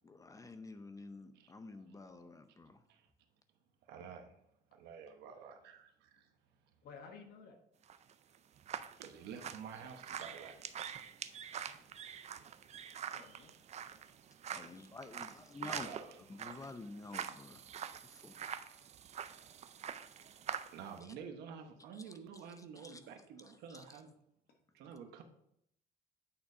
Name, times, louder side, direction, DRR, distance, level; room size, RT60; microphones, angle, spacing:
voice 1, 0.0-2.8 14.5-15.9 16.4-17.6 18.1-18.4 21.9-22.0 22.8-23.0 23.7-23.8, left 3 dB, 20° left, 9 dB, 0.6 m, -50 dB
voice 2, 2.7-3.1 3.9-4.4 4.7-6.3 9.0-10.7 13.0-13.1 13.9-15.0 15.7-16.6 19.6-24.1 24.7-25.2, right 6 dB, 80° right, 5 dB, 1.0 m, -51 dB
voice 3, 6.8-7.6 11.7-11.9 13.1-13.5 18.2-18.6 24.5-24.6, left 5 dB, 65° left, 3 dB, 1.3 m, -55 dB
sound 1, 7.8-21.0, right 8 dB, 40° right, 0.5 m, -46 dB
8.8 x 4.1 x 4.8 m, 0.74 s
cardioid pair, 110°, 17 cm